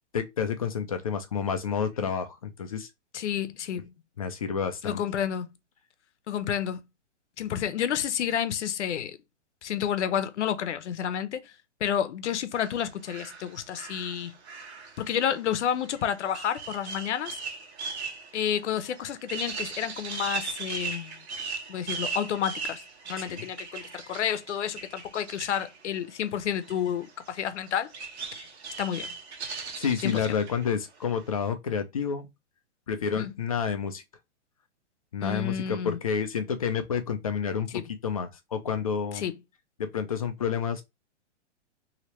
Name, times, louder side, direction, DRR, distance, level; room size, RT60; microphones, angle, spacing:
voice 1, 0.1-2.9 4.2-5.0 23.2-23.5 29.6-32.3 32.9-34.0 35.1-39.2 39.8-40.8, left 7 dB, 30° left, 0.4 m, -29 dB
voice 2, 3.1-3.9 4.8-5.5 6.3-6.9 7.4-9.2 9.6-11.5 11.8-14.3 15.0-17.4 18.3-21.2 21.7-22.8 23.1-27.9 28.4-28.5 28.8-29.1 30.0-30.2 33.2-33.3 35.2-36.0 37.7-37.9 39.1-39.3, left 9 dB, 70° left, 0.7 m, -30 dB
sound 1, 12.5-25.9 26.4-30.7 31.0-31.4, right 5 dB, 65° right, 1.2 m, -39 dB
3.1 x 2.8 x 2.9 m
hypercardioid pair, 170°, 36 cm